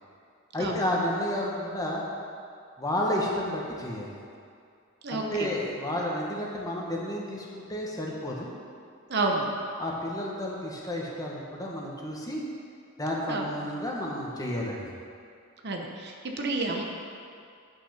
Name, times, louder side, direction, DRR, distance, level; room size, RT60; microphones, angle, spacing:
voice 1, 0.5-2.0 2.8-4.2 5.1-8.5 9.8-12.4 13.0-14.9, left 1 dB, 15° left, -3 dB, 1.3 m, -31 dB
voice 2, 5.0-5.5 9.1-9.5 13.3-13.5 15.6-16.8, right 3 dB, 50° right, 1 dB, 0.9 m, -30 dB
9.6 x 6.2 x 5.8 m, 2.4 s
head